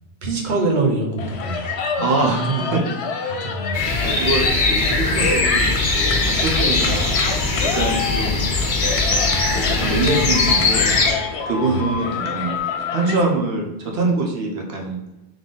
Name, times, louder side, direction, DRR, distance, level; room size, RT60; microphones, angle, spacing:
voice 1, 0.2-1.7 2.2-2.7 3.4-3.8 8.1-8.5 11.7-11.9, right 3 dB, 50° right, 0 dB, 0.9 m, -24 dB
sound 1, 1.2-13.2, left 5 dB, 85° left, 0.9 m, -28 dB
voice 2, 2.0-2.8 3.2-3.5 4.0-7.1 7.6-8.5 9.5-10.9 11.5-12.6 12.9-15.0, right 2 dB, 70° right, 0 dB, 1.1 m, -24 dB
sound 2, 3.7-11.1, left 3 dB, 50° left, 0.8 m, -20 dB
3.7 x 3.3 x 3.7 m, 1.0 s
omnidirectional pair, 1.1 m